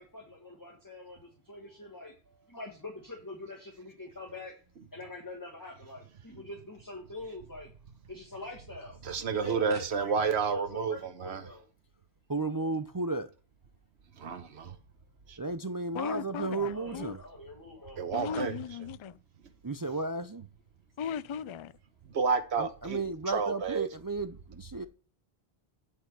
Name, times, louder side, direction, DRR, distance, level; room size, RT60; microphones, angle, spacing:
voice 1, 0.0-2.1 2.5-4.5 4.9-7.7 8.1-9.0 9.3-11.7 16.3-18.4, left 2 dB, 20° left, 1.4 m, -44 dB
voice 2, 9.0-11.4 14.2-14.8 15.3-15.4 18.0-18.6 22.1-23.9, right 5 dB, 90° right, 1.2 m, -31 dB
voice 3, 12.3-13.3 15.4-17.2 19.6-20.4 22.6-24.9, right 3 dB, 35° right, 0.3 m, -33 dB
voice 4, 15.9-17.2 18.1-19.2 21.0-21.7, left 7 dB, 55° left, 0.3 m, -37 dB
8.7 x 5.6 x 4.5 m
omnidirectional pair, 1.1 m